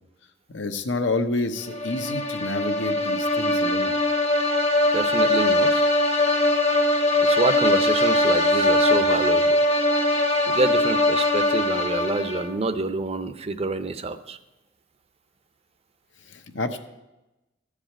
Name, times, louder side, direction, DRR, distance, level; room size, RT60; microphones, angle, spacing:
voice 1, 0.5-4.0 16.2-16.8, left 2 dB, 80° left, 6 dB, 1.0 m, -28 dB
sound 1, 1.7-12.6, left 1 dB, 35° left, 0.9 m, -21 dB
voice 2, 4.9-5.8 7.2-9.6 10.5-14.4, right 3 dB, 35° right, 11 dB, 0.6 m, -27 dB
13.5 x 4.9 x 8.8 m, 1.0 s
head